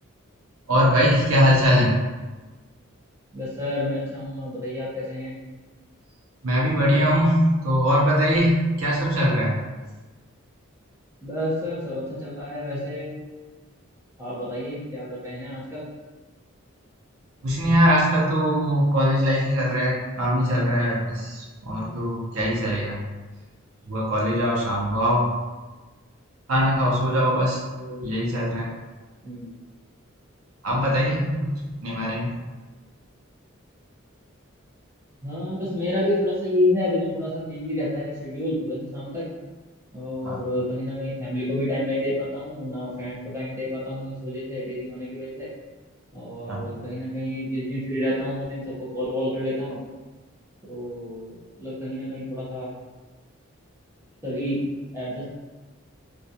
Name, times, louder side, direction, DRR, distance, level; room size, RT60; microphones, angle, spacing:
voice 1, 0.7-2.0 6.4-9.5 17.4-23.0 23.9-25.3 26.5-27.6 28.0-28.7 30.6-32.3 40.2-40.4 46.5-46.7, equal, 90° right, -4 dB, 0.7 m, -21 dB
voice 2, 3.3-5.4 11.2-13.2 14.2-15.8 27.8-28.0 29.2-29.5 35.2-39.3 39.9-45.5 46.1-49.8 50.7-52.7 54.2-54.6 54.9-55.4, left 1 dB, 10° right, -9 dB, 0.7 m, -29 dB
2.3 x 2.3 x 2.7 m, 1.2 s
head